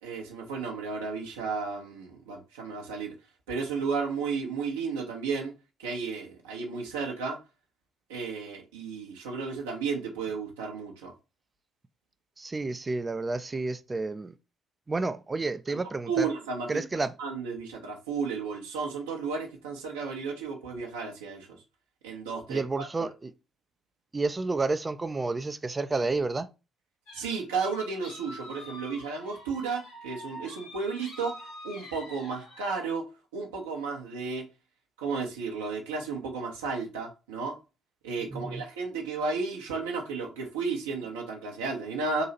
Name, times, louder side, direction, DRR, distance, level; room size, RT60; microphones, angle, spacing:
voice 1, 0.0-3.2 3.5-5.5 5.8-7.4 8.1-11.1 15.7-15.8 16.1-16.8 17.2-21.6 22.0-22.6 23.0-23.1 27.1-31.4 31.6-33.1 33.3-34.4 35.0-37.6 38.0-42.2, right 4 dB, 75° right, 0.8 m, -33 dB
voice 2, 12.4-14.3 14.9-16.3 16.7-17.1 22.5-23.3 24.1-26.5 38.3-38.6, right 3 dB, 25° right, 0.4 m, -30 dB
sound 1, 27.1-32.9, left 1 dB, 65° left, 1.4 m, -46 dB
3.9 x 2.8 x 4.1 m
figure-of-eight pair, 45°, 0 cm